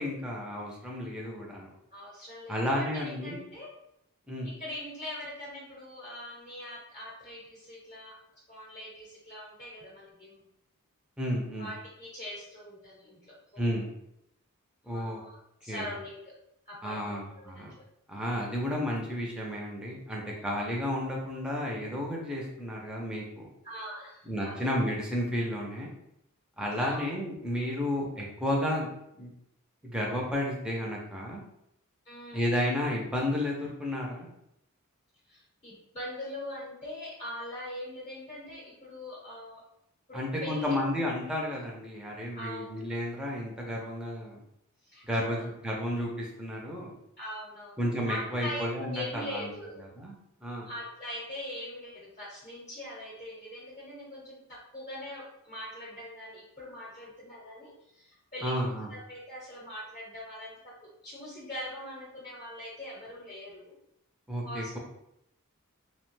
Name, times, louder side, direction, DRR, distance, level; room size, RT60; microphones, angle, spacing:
voice 1, 0.0-1.7 2.5-3.4 4.3-4.5 11.2-11.7 13.6-13.9 14.9-15.2 15.7-15.9 16.8-17.7 18.1-23.5 24.3-25.9 26.6-28.9 29.2-29.3 29.8-31.4 32.3-34.3 40.1-44.4 45.0-46.9 47.8-49.5 50.0-50.1 50.4-50.7 58.4-58.9 64.3-64.8, equal, 5° right, -2 dB, 0.4 m, -32 dB
voice 2, 1.9-3.7 4.4-8.2 8.5-10.4 11.6-13.7 14.8-15.4 15.6-16.3 16.7-17.6 20.1-20.4 23.6-24.6 26.8-27.1 32.1-32.5 35.3-39.6 40.1-40.8 42.4-42.8 44.8-45.5 47.2-47.8 48.1-49.8 50.6-60.8 61.0-63.7 64.4-64.8, left 1 dB, 35° left, -5 dB, 0.7 m, -42 dB
2.7 x 2.1 x 3.1 m, 0.80 s
head